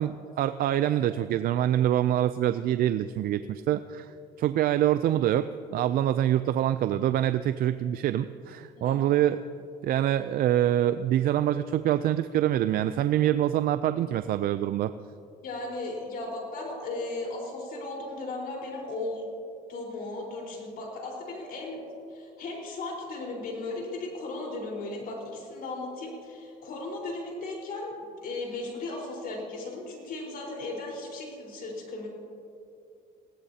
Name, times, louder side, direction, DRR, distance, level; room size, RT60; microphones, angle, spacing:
voice 1, 0.0-4.1 4.4-9.4 9.8-14.9, right 12 dB, 60° right, 12 dB, 0.4 m, -25 dB
voice 2, 15.4-19.3 19.7-21.8 22.1-27.9 28.2-32.1, left 2 dB, 60° left, -1 dB, 4.3 m, -36 dB
21.0 x 16.5 x 2.8 m, 2.6 s
cardioid pair, 110°, 17 cm